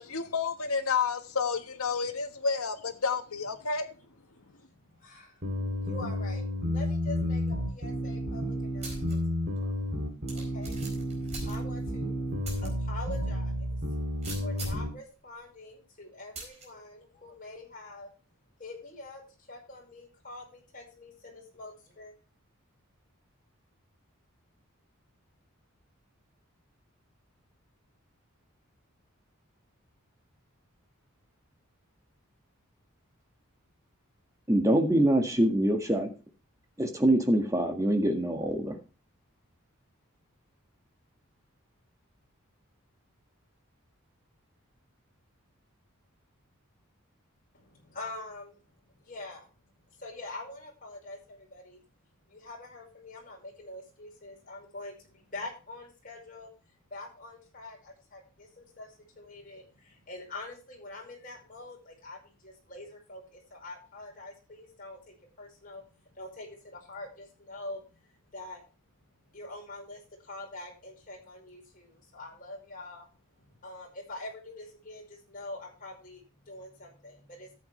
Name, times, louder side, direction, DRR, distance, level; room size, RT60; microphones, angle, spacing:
voice 1, 0.0-3.9, left 5 dB, 85° left, 1.5 m, -30 dB
voice 2, 4.4-9.9 10.3-10.8 11.4-12.2 12.6-13.7 14.4-18.1 18.6-19.2 19.5-22.1 47.5-48.6 48.9-49.5 49.9-51.8 52.3-56.5 56.9-68.0 68.3-68.6 69.3-73.1 73.4-77.5, left 2 dB, 40° left, 5.2 m, -45 dB
sound 1, 5.4-14.9, equal, 55° right, 3.1 m, -31 dB
sound 2, 8.8-9.1 9.6-9.7 10.3-12.0 12.4-12.7 13.1-13.2 14.2-14.9 16.4-16.7, right 2 dB, 30° right, 4.3 m, -40 dB
voice 3, 34.5-36.1 36.8-38.7, right 1 dB, 15° right, 1.8 m, -24 dB
13.5 x 8.5 x 3.3 m
head